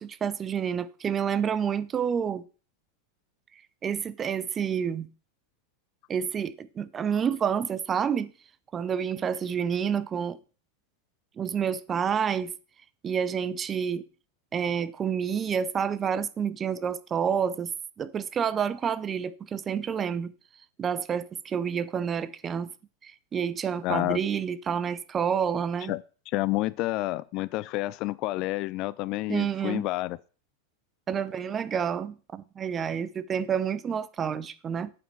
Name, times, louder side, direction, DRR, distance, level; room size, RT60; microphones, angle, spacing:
voice 1, 0.0-2.4 3.8-5.1 6.1-8.3 8.7-10.4 11.4-12.5 13.0-14.0 14.5-17.7 18.0-20.3 20.8-22.7 23.0-25.9 29.3-29.8 31.1-34.9, right 7 dB, 25° right, 0.6 m, -29 dB
voice 2, 23.8-24.2 25.9-30.2, left 19 dB, 40° left, 0.3 m, -29 dB
8.6 x 7.2 x 4.6 m
figure-of-eight pair, 90°, 0 cm